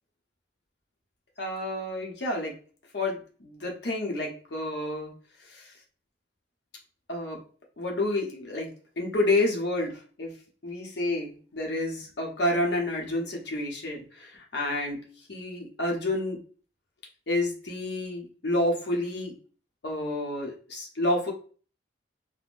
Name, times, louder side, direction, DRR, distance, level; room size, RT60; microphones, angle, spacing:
voice 1, 1.4-2.5 2.9-5.1 5.5-5.7 7.1-7.4 7.8-8.7 9.0-10.3 10.6-15.0 15.3-16.4 17.3-19.4 19.8-21.3, left 1 dB, 65° left, 0 dB, 0.8 m, -29 dB
3.5 x 2.1 x 2.4 m, 0.41 s
head